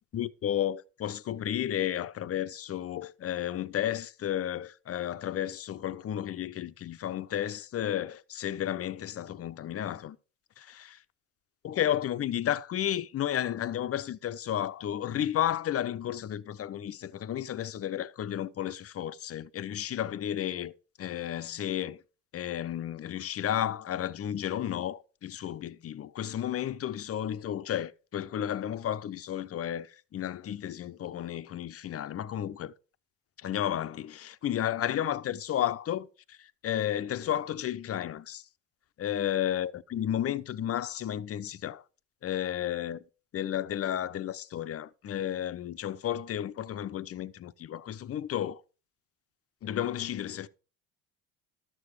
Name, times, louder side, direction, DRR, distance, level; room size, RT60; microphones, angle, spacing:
voice 1, 0.1-10.2 11.6-20.7 21.0-22.0 22.3-32.7 33.4-38.4 39.0-41.8 42.2-43.0 43.3-48.6 49.6-50.5, left 11 dB, 45° left, 0.8 m, -32 dB
12.5 x 6.8 x 4.8 m
supercardioid pair, 90°, 35 cm